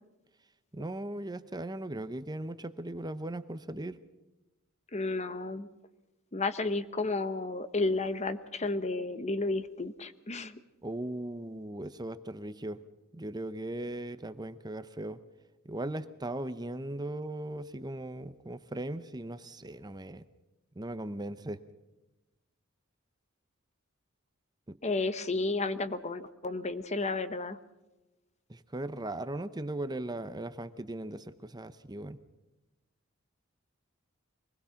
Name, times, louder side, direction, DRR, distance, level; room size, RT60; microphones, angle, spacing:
voice 1, 0.7-4.0 10.8-12.8 13.1-15.2 15.6-20.2 20.8-21.6 28.5-32.2, right 1 dB, 20° right, 12 dB, 0.8 m, -38 dB
voice 2, 4.9-5.7 6.3-10.6 24.8-27.6, left 3 dB, 35° left, 12 dB, 1.1 m, -32 dB
24.5 x 20.5 x 5.8 m, 1.0 s
head